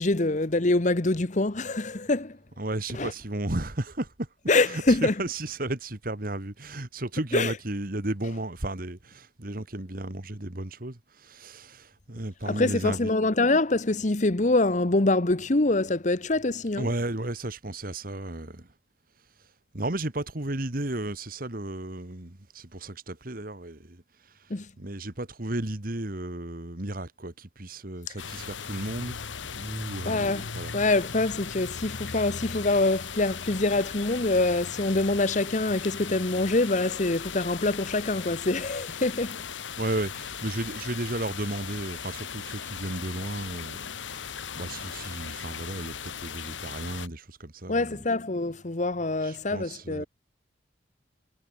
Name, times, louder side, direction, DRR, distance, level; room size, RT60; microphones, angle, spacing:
voice 1, 0.0-2.4 2.9-3.1 4.5-5.1 7.3-7.5 12.5-16.9 24.5-24.7 30.0-39.4 47.7-50.0, left 2 dB, 40° left, 1.1 m, -25 dB
voice 2, 2.6-4.3 4.6-13.1 16.8-18.7 19.7-24.0 24.4-24.5 24.8-29.2 29.5-30.8 39.8-48.1 49.2-50.1, right 1 dB, 50° right, 1.9 m, -34 dB
sound 1, 28.2-47.1, left 7 dB, 90° left, 1.2 m, -38 dB
head